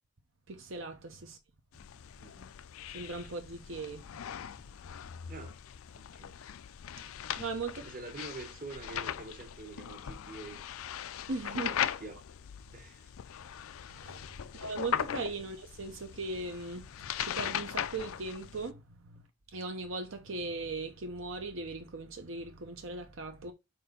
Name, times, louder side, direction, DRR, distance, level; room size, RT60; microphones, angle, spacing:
voice 1, 0.5-1.4 2.9-4.0 7.4-7.9 11.3-11.7 13.9-19.2 19.5-23.5, right 3 dB, 70° right, 0.9 m, -39 dB
sound 1, 1.7-18.7, left 9 dB, 85° left, 0.4 m, -39 dB
voice 2, 2.2-2.5 5.3-5.6 5.9-6.3 7.8-10.6 11.6-12.3 12.7-13.1 14.4-14.5, right 3 dB, 40° right, 1.1 m, -46 dB
4.4 x 4.3 x 5.1 m
head